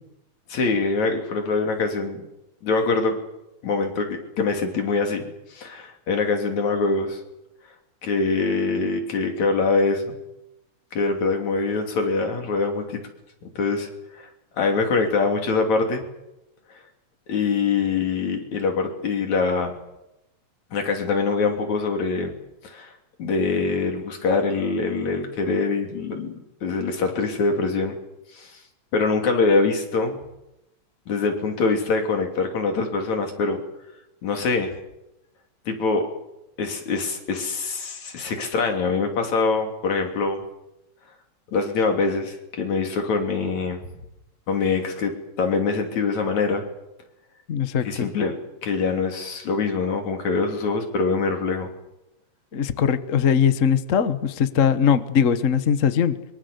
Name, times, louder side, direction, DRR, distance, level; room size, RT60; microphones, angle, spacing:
voice 1, 0.5-2.2 2.6-3.2 3.6-5.2 5.5-7.2 8.0-10.2 10.9-13.0 13.4-14.3 14.6-16.0 17.3-19.8 20.7-22.3 22.6-22.9 23.2-26.3 26.6-27.9 28.3-28.6 28.9-30.2 31.1-33.6 34.2-34.7 35.7-36.1 36.6-40.4 41.5-43.8 44.5-46.6 47.8-48.3 48.6-51.7, left 4 dB, 70° left, 4 dB, 4.4 m, -24 dB
voice 2, 47.5-48.1 52.5-56.2, left 7 dB, 55° left, 11 dB, 0.8 m, -20 dB
24.0 x 24.0 x 7.0 m, 0.91 s
omnidirectional pair, 3.4 m